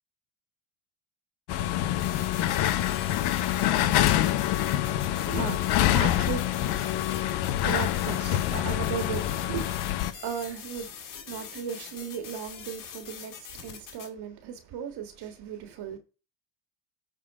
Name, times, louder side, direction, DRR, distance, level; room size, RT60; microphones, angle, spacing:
sound 1, 1.5-10.1, left 12 dB, 65° left, 1.0 m, -26 dB
sound 2, 2.0-14.1, left 8 dB, 45° left, 2.2 m, -44 dB
voice 1, 5.2-16.0, right 8 dB, 60° right, 1.7 m, -37 dB
9.8 x 4.1 x 4.8 m
supercardioid pair, 85°, 43 cm